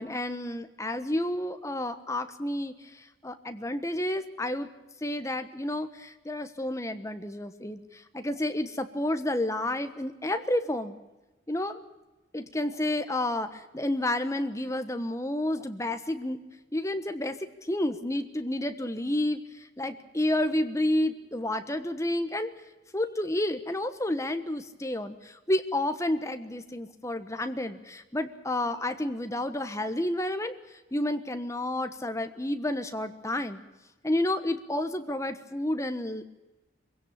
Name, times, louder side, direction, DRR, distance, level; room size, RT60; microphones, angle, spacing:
voice 1, 0.0-2.7 3.2-4.7 5.0-10.9 11.5-11.8 12.3-16.4 16.7-17.4 17.7-19.4 19.8-22.5 22.9-30.5 30.9-33.6 34.0-36.3, left 1 dB, 15° left, 9 dB, 1.3 m, -30 dB
23.5 x 16.5 x 8.7 m, 1.1 s
head